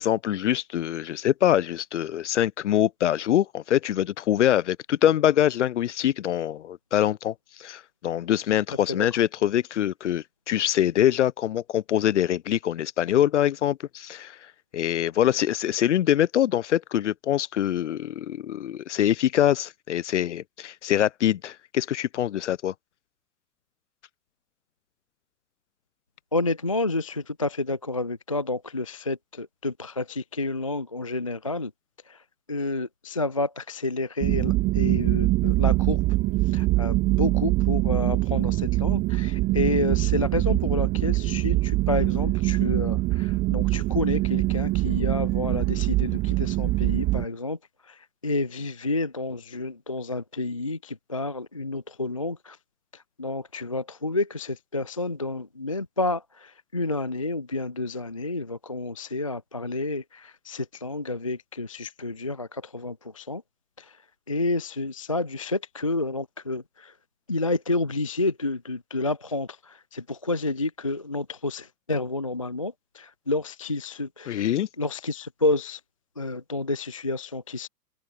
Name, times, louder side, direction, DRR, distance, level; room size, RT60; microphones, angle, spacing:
voice 1, 0.0-7.3 7.6-14.4 14.7-22.7 74.3-74.7, left 11 dB, 45° left, 0.8 m, -24 dB
voice 2, 26.3-31.7 32.0-36.0 36.4-52.6 52.9-63.4 63.8-67.0 67.3-75.8 76.2-77.7, left 2 dB, 25° left, 0.3 m, -30 dB
sound 1, 34.2-47.2, right 19 dB, 20° right, 1.7 m, -23 dB
figure-of-eight pair, 120°, 48 cm